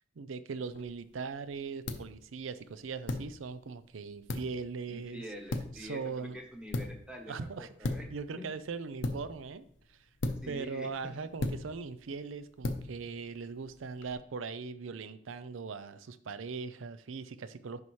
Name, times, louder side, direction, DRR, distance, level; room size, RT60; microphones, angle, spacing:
voice 1, 0.2-5.2 5.8-6.4 7.3-7.7 8.1-9.7 10.5-17.8, right 5 dB, 85° right, 13 dB, 0.5 m, -40 dB
sound 1, 0.7-14.1, left 2 dB, 70° left, 0.7 m, -40 dB
voice 2, 4.9-8.0 10.3-10.9, equal, 5° right, 2 dB, 1.1 m, -46 dB
9.6 x 5.5 x 3.2 m, 0.62 s
head